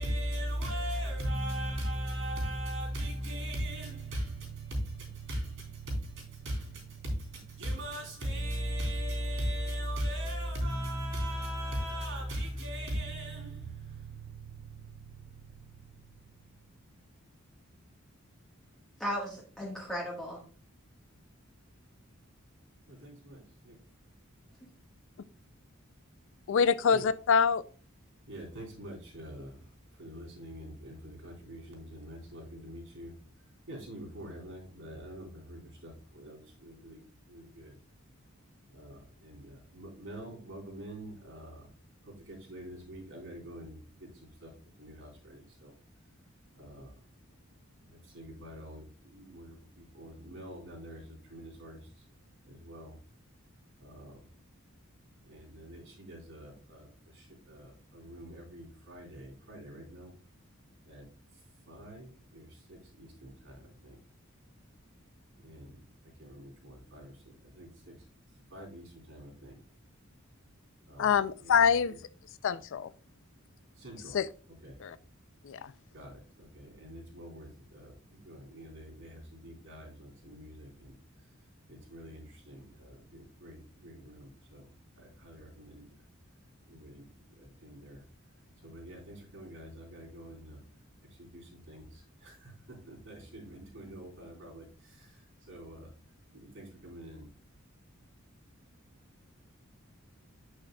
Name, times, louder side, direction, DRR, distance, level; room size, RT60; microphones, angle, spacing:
voice 1, 0.0-15.9 22.9-23.8 26.9-27.0 28.3-29.6 30.0-33.2 33.7-37.8 38.7-41.7 42.1-44.5 44.8-45.7 46.5-46.9 47.9-52.0 52.5-53.0 53.8-54.2 55.2-60.1 60.8-61.0 61.7-64.0 65.4-67.1 67.5-67.9 68.5-69.5 70.9-72.0 73.8-74.2 74.6-74.8 75.9-81.0 81.7-84.7 85.0-85.8 86.7-87.1 87.4-88.0 88.6-90.6 91.2-95.2 95.5-95.9 96.3-97.3, right 1 dB, 65° right, 3.4 m, -40 dB
voice 2, 19.0-20.4, equal, ahead, 1.5 m, -36 dB
voice 3, 26.5-27.6 71.0-71.9 72.4-72.9 74.1-74.3 74.8-75.0 75.4-75.7, left 6 dB, 65° left, 0.4 m, -25 dB
8.4 x 6.5 x 2.3 m
head